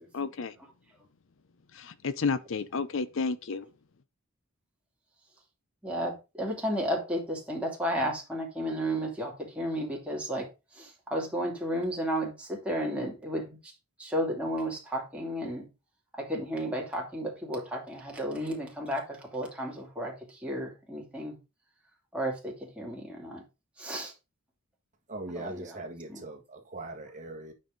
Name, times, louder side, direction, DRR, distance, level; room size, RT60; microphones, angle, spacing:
voice 1, 0.1-0.6 1.7-3.7, left 4 dB, 60° left, 0.6 m, -31 dB
voice 2, 5.8-10.5 10.7-13.7 14.0-15.7 16.1-21.3 22.1-23.4 23.8-24.1 25.3-25.8 26.1-26.2, equal, 5° right, 2.8 m, -33 dB
voice 3, 25.1-27.5, right 2 dB, 35° right, 1.6 m, -40 dB
9.2 x 5.5 x 4.0 m
head